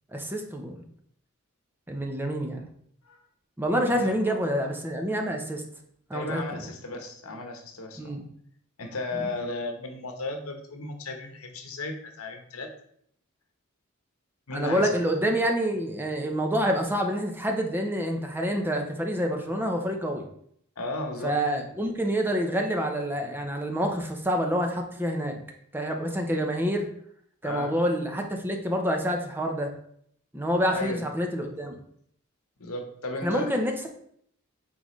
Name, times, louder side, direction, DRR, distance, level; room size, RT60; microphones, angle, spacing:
voice 1, 0.1-0.7 1.9-2.7 3.6-5.6 6.1-6.7 8.0-8.2 14.5-20.2 21.2-25.4 25.7-26.9 27.4-29.7 30.3-31.8 33.2-33.9, equal, 10° right, 3 dB, 0.8 m, -27 dB
voice 2, 3.9-4.3 6.1-8.2 8.8-12.7 14.5-14.9 20.8-21.4 27.4-27.7 30.7-31.1 32.6-33.5, left 2 dB, 80° left, 4 dB, 1.1 m, -35 dB
9.1 x 3.8 x 3.2 m, 0.67 s
head